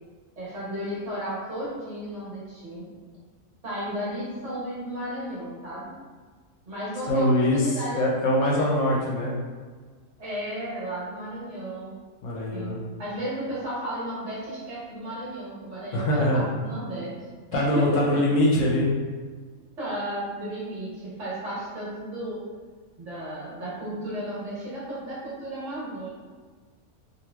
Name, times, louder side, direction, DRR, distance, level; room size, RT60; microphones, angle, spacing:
voice 1, 0.4-2.9 3.6-5.9 6.6-8.0 8.6-8.7 10.2-11.9 12.5-17.2 17.5-18.2 19.8-22.4 23.0-26.1, right 1 dB, 60° right, -9 dB, 1.4 m, -34 dB
voice 2, 7.1-9.4 12.2-12.8 15.9-16.4 17.5-18.9, left 1 dB, 70° left, -3 dB, 0.9 m, -23 dB
3.1 x 2.5 x 2.2 m, 1.5 s
omnidirectional pair, 1.5 m